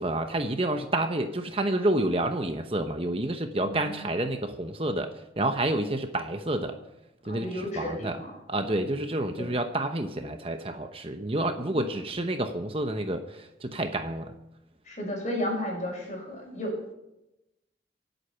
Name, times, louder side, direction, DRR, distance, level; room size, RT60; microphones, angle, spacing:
voice 1, 0.0-5.1 5.4-6.8 7.3-8.2 8.5-14.3, right 1 dB, 30° right, 6 dB, 0.9 m, -29 dB
voice 2, 3.6-4.1 7.2-8.3 9.4-9.5 11.7-11.9 14.9-17.0, left 1 dB, 40° left, 0 dB, 5.8 m, -33 dB
24.5 x 8.2 x 5.8 m, 0.91 s
head